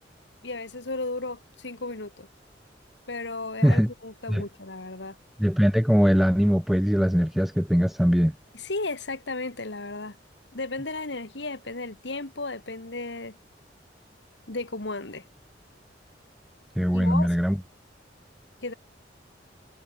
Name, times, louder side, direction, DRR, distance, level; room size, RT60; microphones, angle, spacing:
voice 1, 0.4-2.3 3.1-5.2 8.5-10.2 10.5-13.4 14.5-15.2 16.9-17.3 18.6-18.7, left 3 dB, 75° left, 2.3 m, -34 dB
voice 2, 5.4-8.3 16.8-17.6, equal, ahead, 0.5 m, -21 dB
head